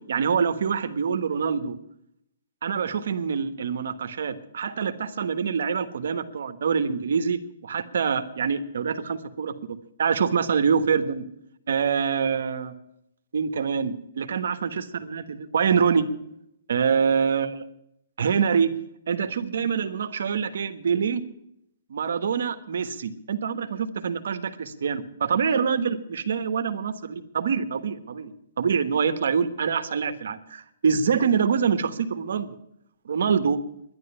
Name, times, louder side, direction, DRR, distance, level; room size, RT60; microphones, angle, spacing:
voice 1, 0.1-1.8 2.6-9.5 10.0-11.2 11.7-12.7 13.3-16.1 16.7-17.6 18.2-18.7 19.1-21.2 21.9-32.6 33.0-33.6, right 6 dB, 70° right, 9 dB, 1.3 m, -25 dB
11.0 x 10.5 x 9.9 m, 0.77 s
hypercardioid pair, 160°, 0 cm